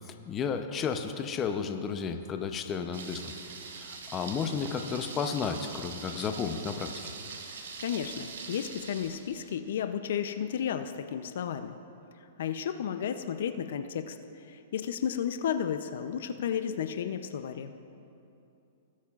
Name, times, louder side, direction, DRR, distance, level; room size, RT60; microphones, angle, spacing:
voice 1, 0.1-3.2 3.7-6.9, left 6 dB, 20° left, 7 dB, 0.6 m, -32 dB
Thunder, 2.9-9.5, right 5 dB, 75° right, 1.2 m, -43 dB
voice 2, 7.8-11.8 12.4-14.2 14.5-17.7, left 8 dB, 70° left, 9 dB, 0.5 m, -33 dB
19.0 x 8.5 x 2.4 m, 2.7 s
hypercardioid pair, 140°, 0 cm